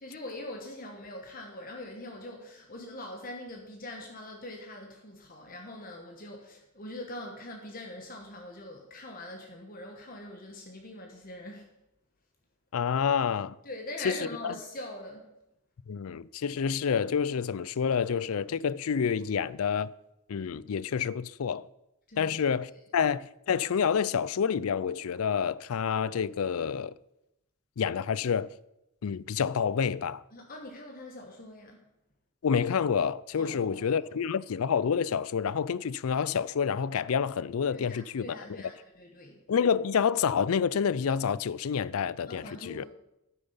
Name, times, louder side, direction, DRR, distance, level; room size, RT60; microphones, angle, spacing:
voice 1, 0.0-11.7 13.6-15.3 22.1-22.4 30.3-31.8 33.4-34.0 37.7-39.4 42.3-42.9, left 1 dB, 40° left, 1.3 m, -43 dB
voice 2, 12.7-13.5 14.0-14.2 14.4-14.5 15.9-19.9 20.3-21.7 22.2-26.9 27.8-28.5 29.0-30.2 32.4-38.4 39.5-42.9, left 7 dB, 75° left, 0.4 m, -28 dB
12.5 x 9.2 x 5.6 m
head